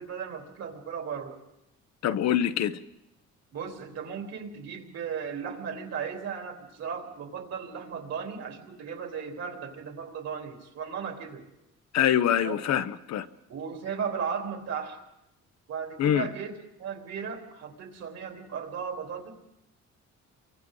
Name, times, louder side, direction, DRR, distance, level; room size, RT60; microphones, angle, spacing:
voice 1, 0.0-1.4 3.5-11.4 12.4-12.5 13.5-15.0 15.7-16.5 16.8-19.3, right 6 dB, 60° right, 2 dB, 3.7 m, -36 dB
voice 2, 2.0-2.8 11.9-13.3 16.0-16.3, left 10 dB, 65° left, 11 dB, 1.0 m, -24 dB
30.0 x 24.0 x 3.9 m, 0.88 s
cardioid pair, 150°, 29 cm